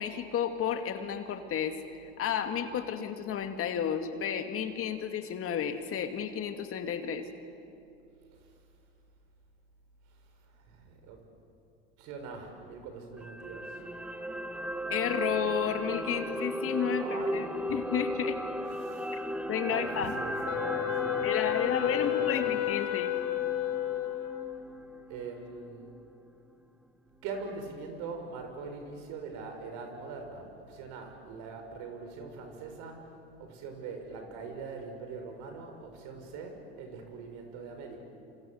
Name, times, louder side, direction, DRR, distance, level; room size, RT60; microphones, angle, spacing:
voice 1, 0.0-1.8 2.2-7.3 14.9-17.4 17.7-18.4 19.5-20.2 21.2-23.1, left 8 dB, 45° left, 7 dB, 2.3 m, -32 dB
voice 2, 10.5-11.2 12.0-13.8 17.0-17.8 18.8-19.2 19.6-21.5 21.8-22.5 25.1-25.9 27.2-38.0, right 4 dB, 65° right, 4 dB, 6.3 m, -42 dB
sound 1, 13.2-25.5 25.8-26.0, equal, 5° right, 1.5 m, -36 dB
Wind instrument woodwind instrument, 20.5-24.8, left 13 dB, 70° left, 1.9 m, -31 dB
27.0 x 27.0 x 8.0 m, 2.6 s
hypercardioid pair, 90°, 32 cm